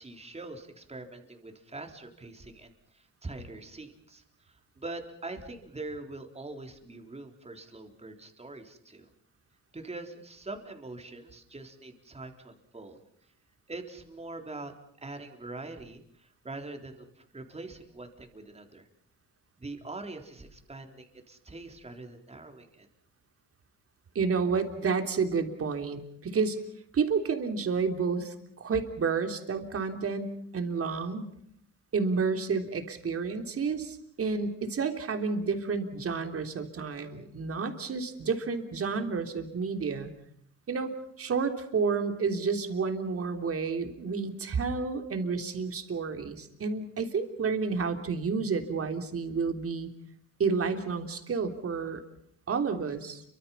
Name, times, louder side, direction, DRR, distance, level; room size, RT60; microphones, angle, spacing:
voice 1, 0.0-9.1 9.7-13.0 13.7-14.7 15.0-18.9 19.6-22.9, right 2 dB, 20° right, 5 dB, 3.9 m, -43 dB
voice 2, 24.2-26.6 26.9-31.3 31.9-40.1 40.7-49.9 50.4-52.0 52.5-53.2, right 5 dB, 50° right, 6 dB, 3.4 m, -30 dB
29.5 x 24.5 x 5.7 m, 0.70 s
cardioid pair, 90°, 30 cm